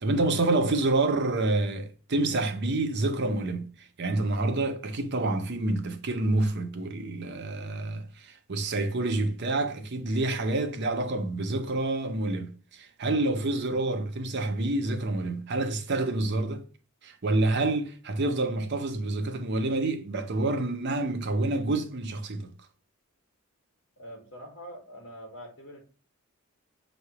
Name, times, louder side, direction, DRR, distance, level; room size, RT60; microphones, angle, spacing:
voice 1, 0.0-16.7 17.0-22.5, right 2 dB, 50° right, 0.7 m, -28 dB
voice 2, 24.0-25.8, equal, 55° left, 1.7 m, -44 dB
5.7 x 3.2 x 2.9 m
head